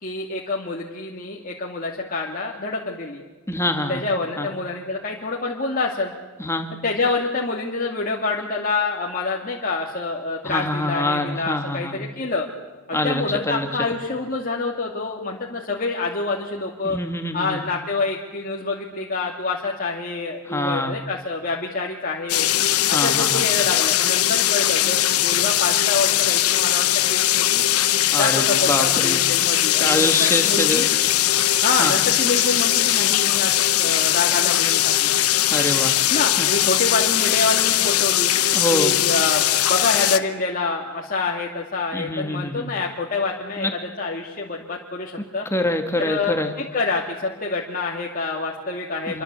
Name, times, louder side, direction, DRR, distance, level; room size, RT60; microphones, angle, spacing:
voice 1, 0.0-3.2 3.9-6.1 6.8-12.5 12.9-17.0 17.3-22.5 22.9-27.6 28.2-30.9 31.6-35.1 36.1-38.3 38.7-45.5 46.0-49.2, left 3 dB, 40° left, -2 dB, 2.4 m, -27 dB
voice 2, 3.5-4.0 4.4-4.5 6.4-6.7 10.4-12.1 12.9-13.7 16.8-17.6 20.5-21.0 22.9-23.4 28.1-29.2 29.8-30.8 31.8-31.9 35.5-36.0 36.4-36.5 38.5-39.0 41.9-42.7 43.6-43.7 45.5-46.5 49.1-49.2, left 1 dB, 10° left, 5 dB, 2.3 m, -25 dB
sound 1, 22.3-40.2, left 12 dB, 80° left, 1.1 m, -20 dB
27.5 x 24.0 x 8.3 m, 1.3 s
head